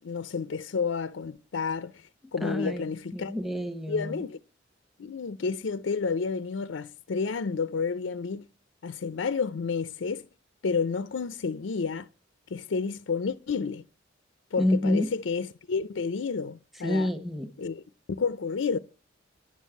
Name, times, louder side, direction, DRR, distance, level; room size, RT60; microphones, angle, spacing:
voice 1, 0.0-2.0 2.3-3.3 3.9-4.4 5.0-8.4 8.8-10.3 10.6-12.1 12.5-13.8 14.5-17.1 17.6-17.8 18.2-18.8, left 5 dB, 75° left, 0.5 m, -30 dB
voice 2, 2.4-2.8 3.1-4.2 14.6-15.1 16.8-17.5, left 1 dB, ahead, 1.0 m, -28 dB
10.5 x 6.4 x 6.9 m
head